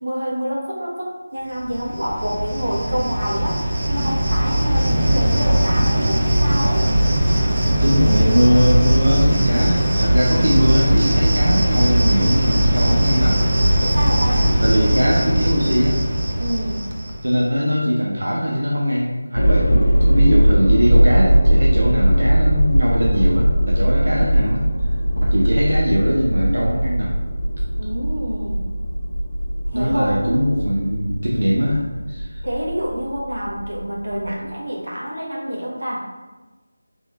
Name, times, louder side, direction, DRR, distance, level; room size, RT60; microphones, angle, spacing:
voice 1, 0.0-3.6 3.9-6.9 13.8-14.5 16.4-16.8 27.8-28.6 29.7-30.5 32.4-36.0, equal, 60° right, -4 dB, 1.2 m, -27 dB
Cricket, 1.6-17.3, equal, 35° right, 0.5 m, -19 dB
voice 2, 7.8-13.4 14.6-16.0 17.2-24.6 25.2-27.2 29.7-32.4, equal, 85° right, -3 dB, 0.8 m, -20 dB
sound 1, 19.4-34.4, right 1 dB, 75° left, 0.7 m, -19 dB
3.6 x 3.1 x 3.4 m, 1.2 s
figure-of-eight pair, 180°, 0 cm